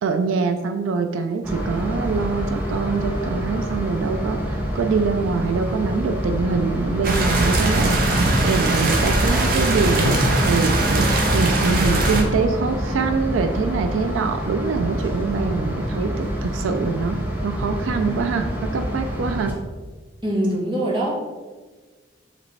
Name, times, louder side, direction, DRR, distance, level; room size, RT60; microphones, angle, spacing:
voice 1, 0.0-10.1 10.4-17.2 17.4-19.5, right 4 dB, 85° right, 7 dB, 0.3 m, -24 dB
sound 1, 1.4-19.5, equal, 10° right, 0.6 m, -27 dB
sound 2, 7.0-12.2, right 2 dB, 50° right, 0.7 m, -20 dB
Drum, 10.1-13.0, left 1 dB, 75° left, 0.5 m, -32 dB
voice 2, 20.2-21.1, right 1 dB, 25° right, -5 dB, 1.1 m, -22 dB
4.9 x 3.2 x 3.2 m, 1.4 s
head